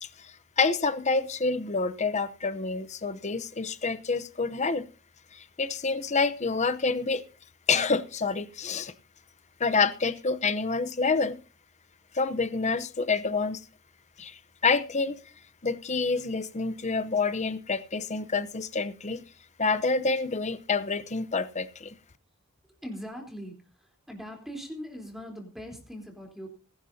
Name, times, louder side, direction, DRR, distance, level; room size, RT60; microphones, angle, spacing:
voice 1, 0.0-4.8 5.3-7.2 7.7-8.9 9.6-11.4 12.1-13.6 14.2-15.2 15.6-19.2 19.6-21.9, left 4 dB, 35° left, 14 dB, 0.8 m, -28 dB
voice 2, 22.8-26.5, equal, ahead, 1 dB, 3.7 m, -41 dB
21.0 x 11.5 x 2.8 m, 0.35 s
head